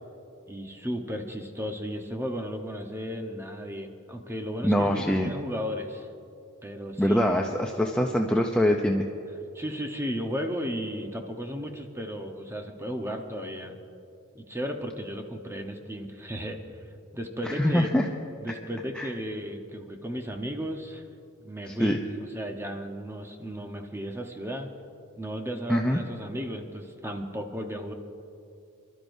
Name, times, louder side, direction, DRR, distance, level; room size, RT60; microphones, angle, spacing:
voice 1, 0.5-6.1 6.6-7.3 9.5-13.8 14.3-16.6 17.1-17.9 18.4-21.0 21.4-22.0 22.3-24.7 25.2-27.9, equal, 10° right, 4 dB, 1.0 m, -34 dB
voice 2, 4.6-5.3 7.0-9.0 17.4-18.1 18.9-19.1 21.7-22.0 25.7-26.0, equal, 5° left, 1 dB, 0.5 m, -24 dB
26.5 x 12.5 x 2.7 m, 2.7 s
head